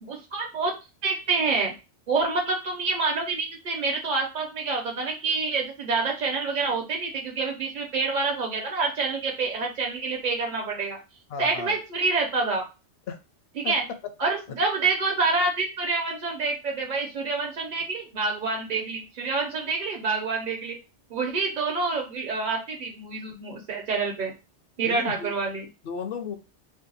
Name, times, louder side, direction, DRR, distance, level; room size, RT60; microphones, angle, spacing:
voice 1, 0.0-0.7 1.0-1.7 2.1-11.0 11.4-12.6 13.6-13.8 14.2-20.8 21.1-24.3 24.8-25.7, right 4 dB, 50° right, 1 dB, 0.7 m, -27 dB
voice 2, 11.3-11.8 13.1-13.2 13.6-13.7 14.5-14.6 24.8-25.3 25.8-26.3, left 6 dB, 65° left, 7 dB, 0.7 m, -34 dB
2.7 x 2.2 x 3.9 m, 0.29 s
omnidirectional pair, 1.2 m